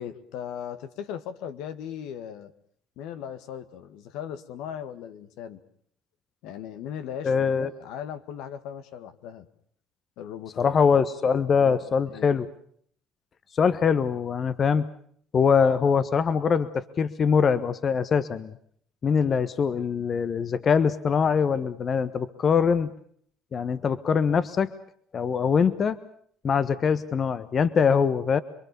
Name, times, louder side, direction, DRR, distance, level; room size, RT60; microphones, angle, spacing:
voice 1, 0.0-2.5 3.0-5.6 6.4-9.5 10.2-10.7 11.6-11.8 12.1-12.3, left 9 dB, 75° left, 9 dB, 1.8 m, -38 dB
voice 2, 7.2-7.7 10.6-12.5 13.5-14.9 15.3-18.5 19.0-22.9 23.5-24.7 25.1-26.0 26.4-28.4, left 6 dB, 45° left, 13 dB, 1.3 m, -23 dB
27.0 x 23.0 x 6.9 m, 0.63 s
hypercardioid pair, 70°, 0 cm